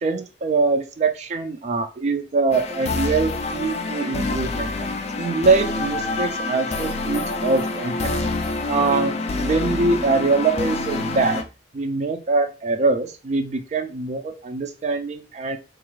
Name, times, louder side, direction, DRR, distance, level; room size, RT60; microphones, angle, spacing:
voice 1, 0.0-4.7 5.2-8.1 8.7-11.4 11.7-15.6, right 3 dB, 40° right, 8 dB, 0.4 m, -23 dB
sound 1, 2.5-11.4, left 2 dB, 35° left, 0.4 m, -27 dB
3.9 x 2.4 x 3.0 m, 0.31 s
head